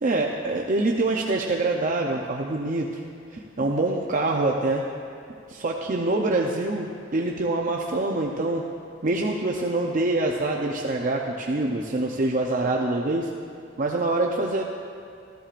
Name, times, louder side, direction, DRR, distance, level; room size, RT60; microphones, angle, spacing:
voice 1, 0.0-3.0 3.3-4.8 5.5-8.6 9.0-13.3 13.8-14.6, right 2 dB, 45° right, 0 dB, 0.6 m, -25 dB
14.0 x 13.0 x 2.5 m, 2.5 s
head